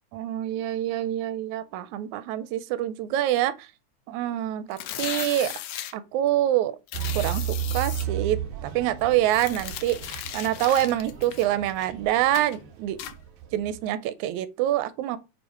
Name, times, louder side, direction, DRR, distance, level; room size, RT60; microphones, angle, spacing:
voice 1, 0.1-3.7 4.1-5.5 5.9-6.8 7.2-13.0 13.5-15.2, right 12 dB, 85° right, 2.0 m, -26 dB
sound 1, 4.7-5.9 6.9-8.0 9.2-11.9 12.3-12.6 13.0-13.1, left 11 dB, 75° left, 2.0 m, -36 dB
sound 2, 6.9-13.9, right 10 dB, 65° right, 1.7 m, -34 dB
5.5 x 4.9 x 4.4 m
omnidirectional pair, 3.4 m